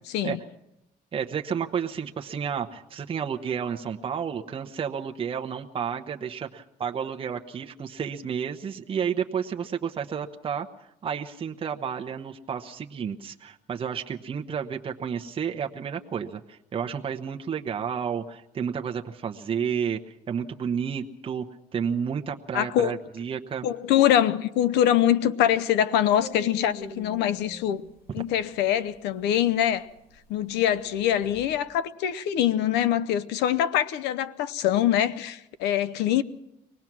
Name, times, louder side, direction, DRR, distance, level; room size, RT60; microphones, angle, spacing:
voice 1, 1.1-10.7 11.0-21.5 21.7-23.7, right 7 dB, 35° right, 0.9 m, -31 dB
voice 2, 22.5-22.9 23.6-27.8 28.1-29.9 30.3-36.2, left 11 dB, 85° left, 0.8 m, -24 dB
sound 1, 26.2-31.5, left 3 dB, 60° left, 3.7 m, -43 dB
24.0 x 18.5 x 6.1 m
cardioid pair, 110°, 17 cm